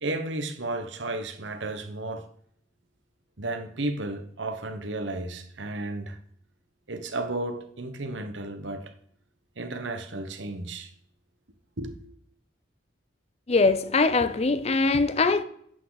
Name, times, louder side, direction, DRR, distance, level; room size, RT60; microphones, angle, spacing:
voice 1, 0.0-2.3 3.4-6.2 6.9-8.9 9.6-10.9 11.8-11.9, right 2 dB, 70° right, 1.1 m, -33 dB
voice 2, 13.5-15.4, left 3 dB, 35° left, 0.6 m, -22 dB
11.0 x 8.3 x 4.0 m
head